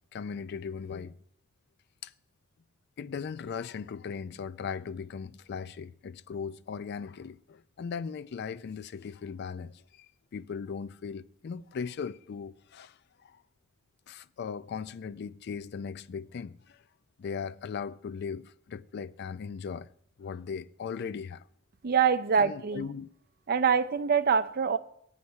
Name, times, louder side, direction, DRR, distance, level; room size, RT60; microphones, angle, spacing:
voice 1, 0.1-1.1 2.0-2.1 3.0-10.1 10.3-13.4 14.1-16.8 17.2-19.9 20.2-21.4 22.4-23.1, left 6 dB, 55° left, 0.4 m, -38 dB
voice 2, 21.8-22.8 23.5-24.8, right 6 dB, 50° right, 0.5 m, -25 dB
8.4 x 5.7 x 7.9 m
head